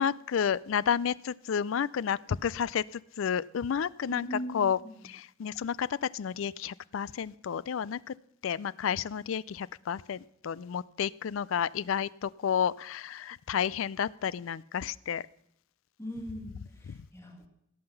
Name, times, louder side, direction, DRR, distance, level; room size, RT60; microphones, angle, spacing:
voice 1, 0.0-4.8 5.1-8.1 8.4-15.3 16.9-17.0, left 8 dB, 65° left, 21 dB, 0.4 m, -31 dB
voice 2, 4.2-4.6 16.0-17.5, equal, 15° left, 1 dB, 2.2 m, -40 dB
17.0 x 5.8 x 7.0 m, 0.73 s
head